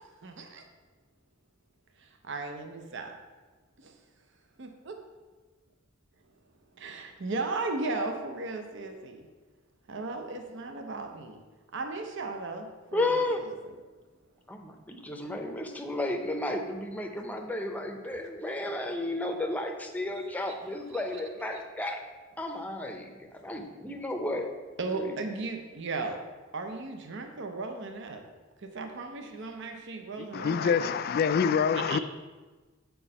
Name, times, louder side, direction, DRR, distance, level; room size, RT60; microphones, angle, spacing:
voice 1, 0.2-0.6 2.3-3.1 4.6-5.0 6.8-9.2 9.9-11.4 11.7-13.5 20.2-21.2 24.8-26.2 26.5-28.2 28.7-31.0 31.7-32.0, right 3 dB, 60° right, 5 dB, 0.7 m, -36 dB
voice 2, 12.9-13.4 14.5-22.0 22.4-24.5 25.1-25.2, left 1 dB, 10° left, 4 dB, 0.7 m, -33 dB
voice 3, 30.2-32.0, left 6 dB, 50° left, 11 dB, 0.3 m, -26 dB
7.5 x 4.5 x 5.4 m, 1.3 s
head